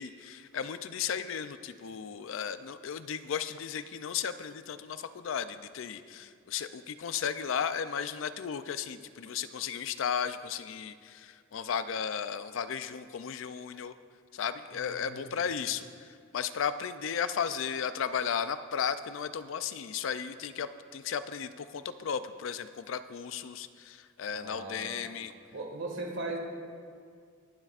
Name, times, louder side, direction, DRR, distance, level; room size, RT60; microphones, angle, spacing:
voice 1, 0.0-13.9 14.3-15.8 16.3-25.3, left 7 dB, 65° left, 12 dB, 0.4 m, -35 dB
voice 2, 14.7-15.4 24.3-25.0 25.5-26.4, right 2 dB, 65° right, 1 dB, 1.7 m, -39 dB
21.5 x 7.6 x 2.4 m, 2.1 s
head